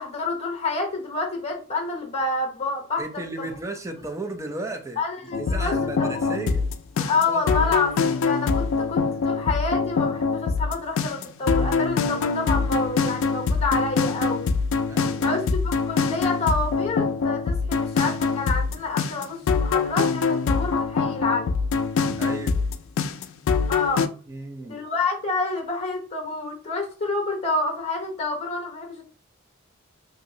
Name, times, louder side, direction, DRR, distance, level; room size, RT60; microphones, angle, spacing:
voice 1, 0.0-3.0 3.4-3.5 5.0-5.7 6.0-6.4 7.0-14.4 15.2-21.5 23.7-24.1 24.6-29.1, left 3 dB, 30° left, 1 dB, 0.8 m, -28 dB
voice 2, 3.0-6.6 7.0-7.7 14.9-15.4 22.1-22.5 24.3-24.8, right 2 dB, 15° right, 4 dB, 0.5 m, -35 dB
sound 1, 5.3-24.1, left 5 dB, 65° left, 0.3 m, -24 dB
2.9 x 2.6 x 2.7 m, 0.37 s
head